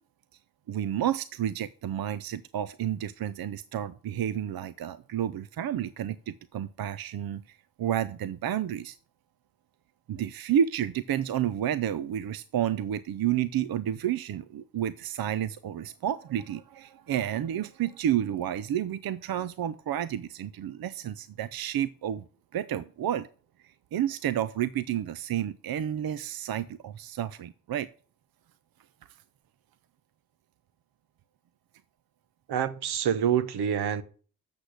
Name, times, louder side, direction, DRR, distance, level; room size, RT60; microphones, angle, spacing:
voice 1, 0.7-9.0 10.1-22.3 22.5-23.3 23.6-27.9, right 10 dB, 65° right, 0.6 m, -30 dB
voice 2, 32.5-34.0, right 8 dB, 85° right, 0.9 m, -26 dB
8.3 x 6.7 x 7.9 m
cardioid pair, 60°, 38 cm